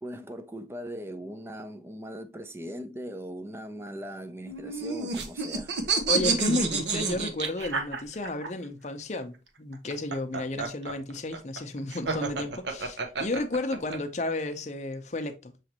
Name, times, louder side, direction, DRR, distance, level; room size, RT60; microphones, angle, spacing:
voice 1, 0.0-5.8, equal, 15° right, 0.4 m, -39 dB
sound 1, 4.5-8.5 9.7-14.0, right 4 dB, 75° right, 0.8 m, -29 dB
voice 2, 6.1-15.5, left 2 dB, 40° left, 0.6 m, -32 dB
5.9 x 3.2 x 2.8 m
head